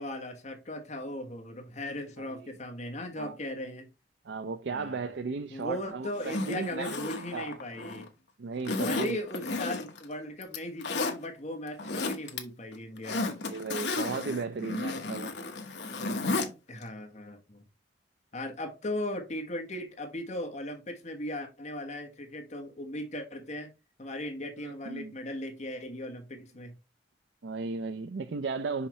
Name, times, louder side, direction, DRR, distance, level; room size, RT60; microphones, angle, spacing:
voice 1, 0.0-3.9 4.7-5.0 5.5-8.1 8.8-13.2 16.7-17.6 18.3-23.7 24.0-26.7, left 1 dB, 40° left, 1.4 m, -38 dB
voice 2, 2.2-2.5 3.2-3.4 4.2-7.6 8.4-9.2 13.4-15.3 24.6-25.1 27.4-28.9, right 4 dB, 65° right, 0.4 m, -35 dB
Zipper (clothing), 6.1-8.1 8.6-10.0 10.4-11.1 11.7-12.4 12.7-16.5 16.8-16.9, left 3 dB, 65° left, 1.2 m, -33 dB
5.7 x 5.6 x 3.1 m
head